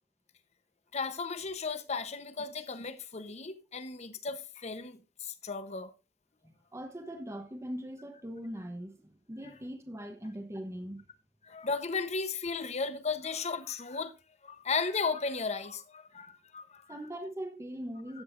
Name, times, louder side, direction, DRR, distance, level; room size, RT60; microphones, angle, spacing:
voice 1, 0.9-5.9 11.4-14.1 14.4-17.0 18.1-18.2, left 4 dB, 40° left, 0.9 m, -35 dB
voice 2, 6.4-11.0 16.9-18.2, equal, 15° right, 0.9 m, -41 dB
13.5 x 8.5 x 2.6 m
head